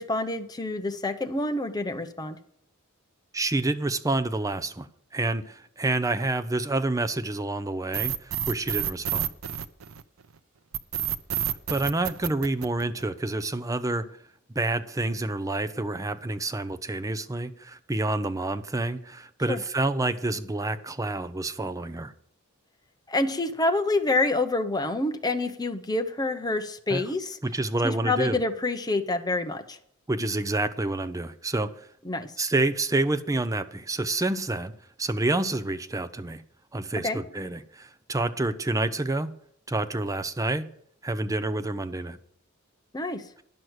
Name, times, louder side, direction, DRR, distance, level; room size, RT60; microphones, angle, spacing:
voice 1, 0.0-2.4 19.5-19.6 23.1-27.4 27.8-29.8 32.0-32.3 37.0-37.2 42.9-43.3, left 2 dB, 20° left, 7 dB, 0.8 m, -27 dB
voice 2, 3.3-4.9 5.1-9.3 11.7-14.1 14.5-22.1 26.9-27.0 27.4-28.4 30.1-31.9 32.4-34.7 35.0-36.4 36.7-39.3 39.7-40.7 41.0-42.2, right 2 dB, 15° right, 11 dB, 0.6 m, -28 dB
sound 1, 7.9-10.2 10.7-13.2, right 10 dB, 75° right, 0.6 m, -29 dB
10.5 x 6.3 x 8.0 m, 0.67 s
head